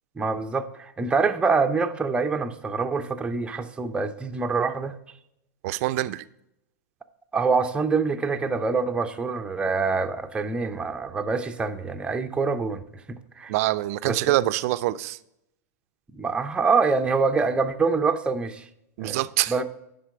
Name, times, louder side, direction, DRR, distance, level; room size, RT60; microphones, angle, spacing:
voice 1, 0.2-5.0 7.3-12.8 13.1-13.5 14.0-14.2 16.1-18.7 19.0-19.2 19.5-19.6, right 4 dB, 10° right, 0.6 m, -25 dB
voice 2, 5.6-6.2 13.5-15.2 19.0-19.5, right 16 dB, 60° right, 0.4 m, -25 dB
10.5 x 3.9 x 4.6 m
hypercardioid pair, 120°, 9 cm